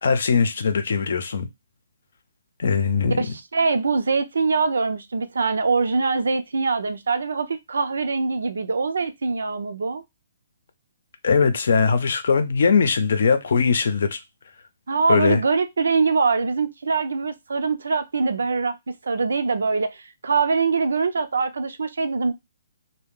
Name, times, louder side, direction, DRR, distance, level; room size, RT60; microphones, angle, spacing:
voice 1, 0.0-1.5 2.6-3.2 11.2-14.2 15.1-15.4, left 5 dB, 65° left, 0.6 m, -20 dB
voice 2, 3.2-10.0 14.9-22.3, right 4 dB, 85° right, 0.5 m, -23 dB
2.7 x 2.1 x 3.6 m
hypercardioid pair, 160°, 0 cm